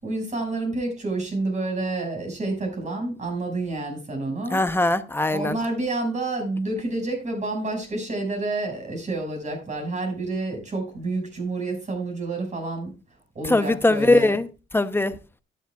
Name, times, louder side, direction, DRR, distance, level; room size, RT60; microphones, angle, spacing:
voice 1, 0.0-4.6 5.3-12.9 13.3-14.4, right 2 dB, 35° right, 5.8 m, -29 dB
voice 2, 4.5-5.6 13.4-14.5 14.7-15.1, left 2 dB, 10° left, 0.8 m, -20 dB
12.0 x 11.0 x 2.4 m
cardioid pair, 90°, 20 cm